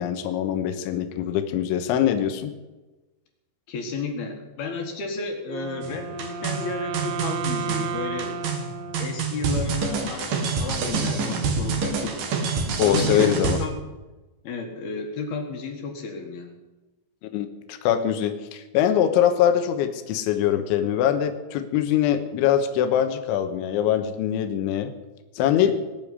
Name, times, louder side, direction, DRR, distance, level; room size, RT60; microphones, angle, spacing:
voice 1, 0.0-2.5 12.8-13.6 17.3-24.9 25.4-25.7, left 10 dB, 80° left, 8 dB, 3.5 m, -23 dB
voice 2, 3.7-8.5 9.0-12.2 12.9-13.8 14.4-16.6 25.6-25.7, left 4 dB, 60° left, 4 dB, 3.2 m, -32 dB
Wind instrument woodwind instrument, 5.5-9.7, right 5 dB, 75° right, 3.1 m, -33 dB
sound 1, 5.8-13.7, right 4 dB, 55° right, 3.3 m, -27 dB
20.5 x 7.0 x 9.6 m, 1.1 s
omnidirectional pair, 5.5 m